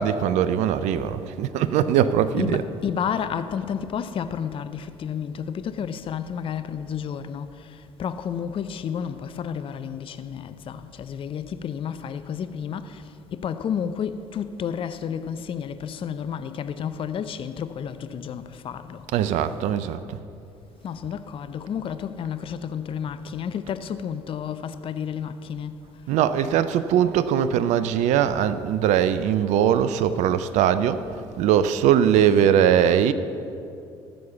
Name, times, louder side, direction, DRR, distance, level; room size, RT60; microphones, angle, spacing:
voice 1, 0.0-2.6 19.1-20.2 26.1-33.1, right 9 dB, 60° right, 0.5 m, -21 dB
voice 2, 2.4-13.0 13.3-19.1 20.8-25.7, left 8 dB, 40° left, 0.6 m, -31 dB
14.0 x 6.5 x 6.9 m
hypercardioid pair, 55°, 14 cm